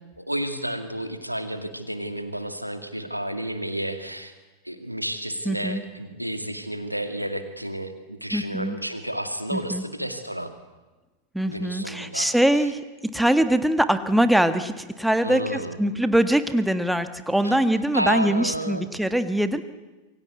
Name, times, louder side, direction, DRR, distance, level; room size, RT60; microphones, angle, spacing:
voice 1, 0.2-4.3 4.6-10.5 11.5-12.3 15.2-15.8 17.4-17.6 17.9-18.9, right 1 dB, 90° right, 8 dB, 2.2 m, -31 dB
voice 2, 5.4-5.8 8.3-8.8 9.5-9.8 11.3-19.6, right 1 dB, ahead, 10 dB, 1.5 m, -23 dB
27.5 x 23.5 x 8.3 m, 1.2 s
figure-of-eight pair, 90°, 0 cm